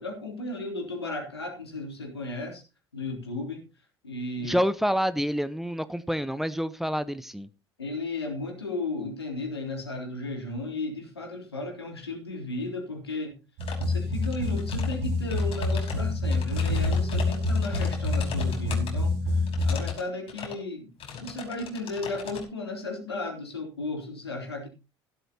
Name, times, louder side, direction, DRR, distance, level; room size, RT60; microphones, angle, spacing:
voice 1, 0.0-2.6 2.9-3.6 4.0-4.6 7.8-13.4 13.8-20.9 21.2-24.7, left 2 dB, 90° left, 2 dB, 3.7 m, -35 dB
voice 2, 4.4-7.5, equal, ahead, 14 dB, 1.0 m, -27 dB
sound 1, 13.6-13.9 14.2-14.9 15.3-18.9 19.5-20.0 20.3-20.6 21.0-22.4, left 6 dB, 45° left, 5.4 m, -40 dB
sound 2, 13.6-19.9, left 2 dB, 65° right, 5.5 m, -27 dB
15.5 x 12.5 x 2.9 m, 0.29 s
figure-of-eight pair, 60°, 13 cm